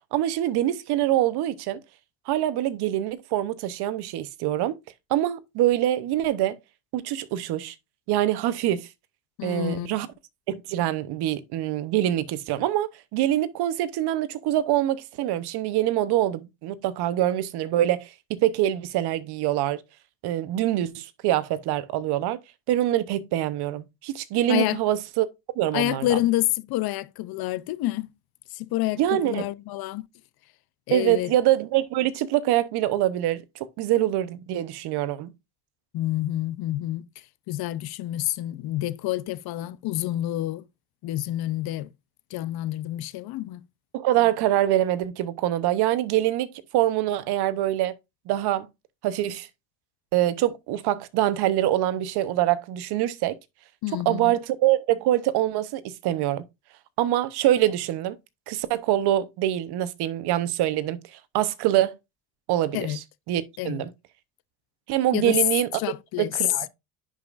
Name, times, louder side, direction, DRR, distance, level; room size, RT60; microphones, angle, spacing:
voice 1, 0.1-1.8 2.3-4.8 5.1-6.6 6.9-7.7 8.1-8.9 9.4-10.1 10.5-19.8 20.2-22.4 22.7-25.3 25.6-26.2 29.0-29.5 30.9-35.3 43.9-47.9 48.3-48.7 49.0-49.5 50.1-53.4 54.0-56.4 57.0-58.2 58.5-62.0 62.5-63.0 63.3-63.9 64.9-65.7 66.2-66.7, right 13 dB, 65° right, 0.9 m, -24 dB
voice 2, 9.4-9.9 24.5-24.8 25.7-28.1 28.5-30.1 30.9-31.3 35.9-37.0 37.5-40.6 41.0-41.9 42.3-43.6 53.8-54.4 62.7-63.0 63.6-63.9 65.1-65.4 65.7-66.4, left 15 dB, 60° left, 0.7 m, -28 dB
10.5 x 5.0 x 2.5 m
supercardioid pair, 95°, 42 cm